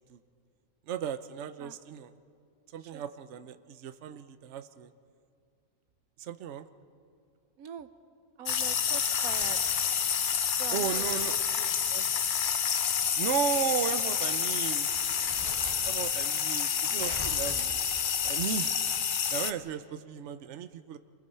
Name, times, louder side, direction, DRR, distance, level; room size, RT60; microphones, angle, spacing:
voice 1, 0.9-2.1 2.7-4.9 6.2-6.7 10.7-11.6 13.2-14.9 15.8-17.8 18.2-18.7 19.3-21.0, right 9 dB, 60° right, 11 dB, 1.0 m, -35 dB
voice 2, 7.6-7.9 8.4-9.6 10.6-12.2 17.2-17.3, right 9 dB, 90° right, 12 dB, 1.3 m, -44 dB
sound 1, 8.5-19.5, left 7 dB, 45° left, 0.7 m, -29 dB
Crumpling crinkling, 8.9-10.0 10.9-13.0 13.3-13.4 14.2-14.4 14.7-16.3 17.0-18.6, equal, 25° right, 3.4 m, -46 dB
27.5 x 22.5 x 5.6 m, 2.4 s
omnidirectional pair, 1.4 m